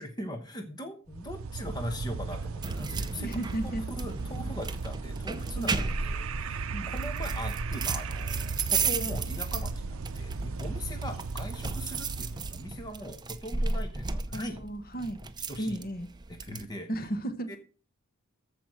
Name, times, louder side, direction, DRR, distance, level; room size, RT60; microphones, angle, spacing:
voice 1, 0.0-3.3 4.0-14.6 15.5-15.8 16.3-16.9 17.5-17.6, equal, 20° left, 1.0 m, -40 dB
sound 1, 1.1-13.0, right 4 dB, 65° right, 0.6 m, -36 dB
sound 2, 2.6-16.7, right 4 dB, 20° right, 0.6 m, -35 dB
voice 2, 3.2-3.8 5.6-5.8 6.7-6.9 14.3-15.2 15.6-16.1 16.9-17.6, right 1 dB, 40° left, 1.2 m, -34 dB
14.0 x 5.0 x 6.2 m
head